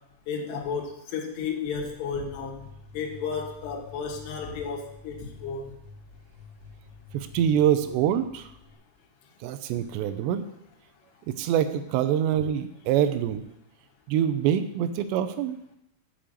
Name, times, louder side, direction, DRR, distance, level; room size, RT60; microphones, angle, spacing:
voice 1, 0.3-2.6 2.9-5.7, left 5 dB, 75° left, 0 dB, 3.3 m, -33 dB
sound 1, 2.2-8.7, left 5 dB, 35° left, 1.6 m, -48 dB
voice 2, 7.1-8.5 9.4-10.4 11.4-13.5 14.1-15.6, right 10 dB, 80° right, 9 dB, 2.8 m, -25 dB
7.0 x 6.4 x 7.4 m, 0.79 s
omnidirectional pair, 5.1 m